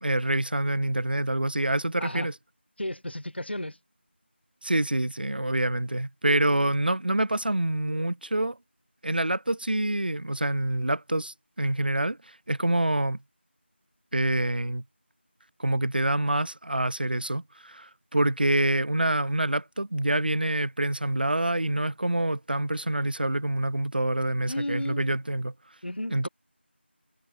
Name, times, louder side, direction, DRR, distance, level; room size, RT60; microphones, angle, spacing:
voice 1, 0.0-2.3 4.6-8.6 9.0-13.2 14.1-14.8 15.6-25.5 26.1-26.3, right 1 dB, 50° right, 0.4 m, -26 dB
voice 2, 2.8-3.8 24.4-25.1 25.8-26.3, left 1 dB, 65° left, 2.0 m, -33 dB
figure-of-eight pair, 180°, 6 cm